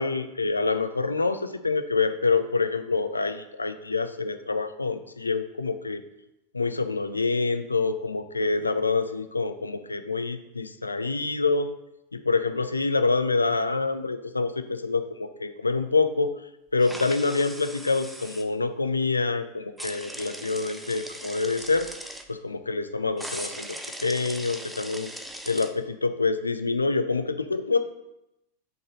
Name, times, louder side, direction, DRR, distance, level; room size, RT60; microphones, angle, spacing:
voice 1, 0.0-6.0 6.5-11.7 12.1-16.3 16.7-21.9 22.3-23.7 24.0-25.1 25.5-27.8, left 4 dB, 80° left, 10 dB, 0.4 m, -26 dB
sound 1, 16.8-18.4 19.8-22.2 23.2-25.7, right 1 dB, 5° right, 0.6 m, -39 dB
5.6 x 3.9 x 5.3 m, 0.88 s
figure-of-eight pair, 90°, 0 cm